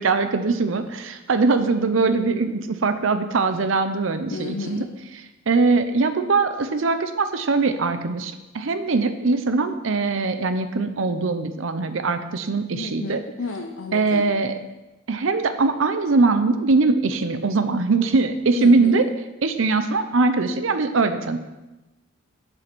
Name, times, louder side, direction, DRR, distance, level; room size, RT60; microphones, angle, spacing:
voice 1, 0.0-4.8 5.1-13.2 13.9-14.5 15.1-19.0 19.4-21.4, right 3 dB, 70° right, 9 dB, 0.7 m, -21 dB
voice 2, 4.3-4.8 12.7-14.2 18.5-19.0, left 3 dB, 80° left, 3 dB, 0.7 m, -32 dB
7.7 x 7.4 x 6.1 m, 1.0 s
head